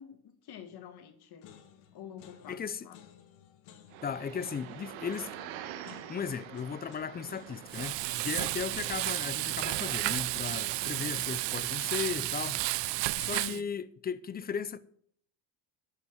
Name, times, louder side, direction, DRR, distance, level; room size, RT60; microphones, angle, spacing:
voice 1, 0.0-1.5 1.9-3.0 13.3-13.7, left 8 dB, 55° left, 1.7 m, -47 dB
sound 1, 0.7-1.1 1.4-12.9, left 9 dB, 80° left, 1.8 m, -57 dB
voice 2, 2.5-2.9 4.0-5.3 6.1-12.6 13.2-14.8, left 7 dB, 20° left, 0.5 m, -36 dB
sound 2, 3.9-11.5, right 11 dB, 85° right, 1.4 m, -46 dB
Frying (food), 7.7-13.6, right 19 dB, 65° right, 0.6 m, -32 dB
13.5 x 5.9 x 7.7 m
cardioid pair, 130°, 47 cm